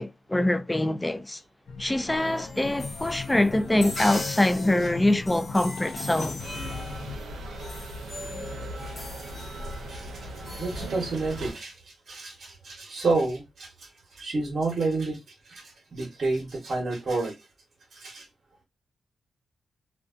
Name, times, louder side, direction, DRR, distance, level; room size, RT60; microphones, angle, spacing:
voice 1, 0.0-1.4 1.8-6.4, left 1 dB, 15° left, 0.3 m, -24 dB
sound 1, 1.7-7.2, left 4 dB, 75° left, 0.5 m, -39 dB
sound 2, 2.1-11.6, left 3 dB, 40° left, 0.7 m, -40 dB
sound 3, 6.4-11.5, right 1 dB, 85° right, 0.6 m, -38 dB
voice 2, 8.9-9.2 9.7-17.4 17.9-18.3, right 3 dB, 55° right, 0.9 m, -30 dB
2.5 x 2.2 x 2.4 m
cardioid pair, 85°, 0 cm